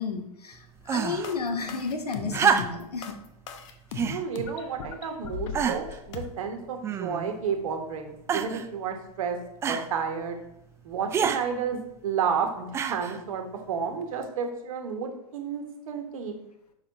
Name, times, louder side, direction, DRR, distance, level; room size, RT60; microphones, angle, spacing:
voice 1, 0.0-3.2, left 4 dB, 80° left, 6 dB, 1.0 m, -32 dB
sound 1, 0.9-1.3 2.3-3.0 3.9-4.2 5.0-5.1 5.5-6.0 6.8-7.4 8.3-8.7 9.6-9.9 11.1-11.4 12.7-13.2 14.2-14.3, right 7 dB, 15° right, 0.3 m, -27 dB
sound 2, 1.2-6.3, left 7 dB, 50° left, 0.9 m, -37 dB
voice 2, 4.1-9.4 9.6-10.4 10.8-16.3, right 6 dB, 60° right, 5 dB, 1.3 m, -31 dB
6.5 x 4.9 x 4.1 m, 0.80 s
figure-of-eight pair, 100°, 20 cm